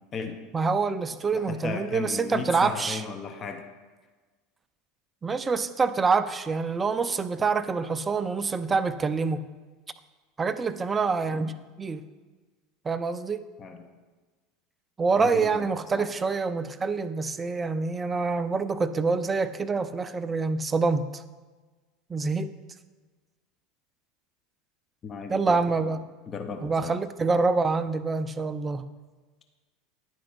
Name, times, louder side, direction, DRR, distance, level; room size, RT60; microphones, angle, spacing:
voice 1, 0.5-3.0 5.2-9.4 10.4-12.0 12.8-13.4 15.0-21.2 22.1-22.5 25.3-26.0 26.6-28.8, right 4 dB, 25° right, 12 dB, 0.4 m, -26 dB
voice 2, 1.3-3.6 13.6-13.8 15.1-15.7 15.9-16.1 25.0-25.9 26.3-27.0, left 5 dB, 35° left, 6 dB, 0.7 m, -36 dB
10.5 x 4.4 x 4.0 m, 1.3 s
hypercardioid pair, 85°, 0 cm